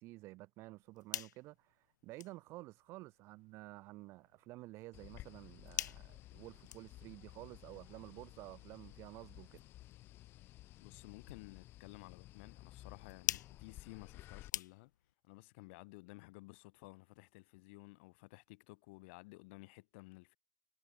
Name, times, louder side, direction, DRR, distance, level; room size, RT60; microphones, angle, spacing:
voice 1, 0.0-9.6, right 20 dB, 25° right, 2.5 m, -52 dB
sound 1, 0.7-15.1, left 11 dB, 75° left, 1.9 m, -48 dB
sound 2, 4.9-14.5, left 15 dB, 25° left, 2.7 m, -55 dB
voice 2, 10.8-14.9 15.2-20.4, left 26 dB, 40° left, 3.1 m, -55 dB
supercardioid pair, 175°, 10 cm